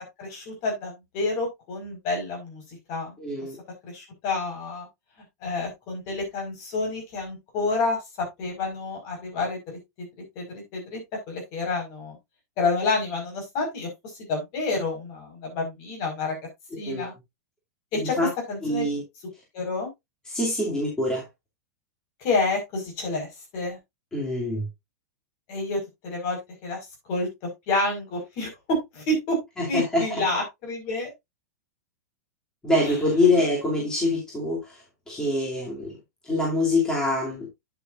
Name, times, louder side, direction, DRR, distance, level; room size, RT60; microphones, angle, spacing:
voice 1, 0.2-2.6 2.9-3.2 3.8-4.9 5.4-8.0 8.4-10.1 10.3-11.0 11.3-12.2 12.6-13.9 14.3-16.4 16.8-17.1 17.9-18.1 18.5-18.9 19.5-19.9 22.2-23.3 23.5-23.8 25.5-26.8 27.1-27.3 27.7-29.4 29.7-31.1 32.8-32.9, left 3 dB, 35° left, 5.0 m, -29 dB
voice 2, 3.2-3.6 16.9-17.1 18.0-18.3 18.6-19.0 20.3-21.3 24.1-24.6 29.7-30.1 32.6-34.8 35.1-36.0 36.2-37.5, left 2 dB, 5° left, 2.7 m, -24 dB
9.3 x 8.4 x 2.5 m
supercardioid pair, 165°, 9 cm